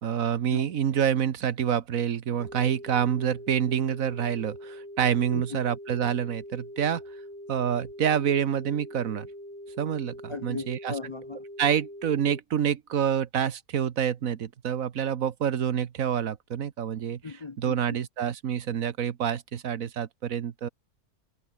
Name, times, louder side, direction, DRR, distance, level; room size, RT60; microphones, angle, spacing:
voice 1, 0.0-7.0 7.5-9.3 9.8-10.9 11.6-17.2 17.6-20.7, right 8 dB, 60° right, 1.4 m, -27 dB
sound 1, 2.4-12.4, equal, 5° left, 6.0 m, -43 dB
voice 2, 5.3-5.6 10.3-11.4 17.2-17.8, left 4 dB, 45° left, 0.3 m, -37 dB
omnidirectional pair, 1.6 m